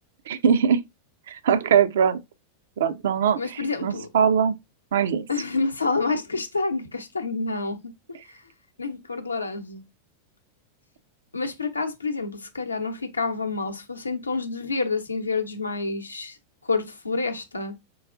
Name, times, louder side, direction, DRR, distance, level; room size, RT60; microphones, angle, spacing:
voice 1, 0.3-0.8 1.3-2.2 2.8-4.5 4.9-5.3, right 7 dB, 60° right, 0.4 m, -21 dB
voice 2, 3.4-4.1 5.3-7.9 8.3-8.4 8.8-9.8 11.3-16.4 16.6-17.7, left 3 dB, 80° left, 0.7 m, -28 dB
4.6 x 2.3 x 2.4 m
figure-of-eight pair, 90°, 0 cm